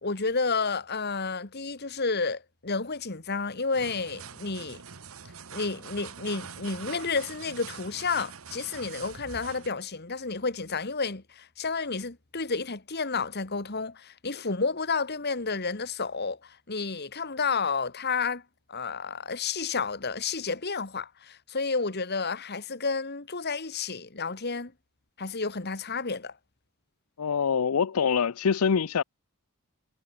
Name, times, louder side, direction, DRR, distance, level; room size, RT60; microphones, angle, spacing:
voice 1, 0.0-4.8 5.5-18.4 18.7-24.7 25.2-26.3, left 4 dB, 45° left, 1.8 m, -31 dB
sound 1, 3.7-9.7, right 6 dB, 70° right, 1.5 m, -44 dB
voice 2, 27.2-29.0, left 6 dB, 80° left, 0.5 m, -24 dB
head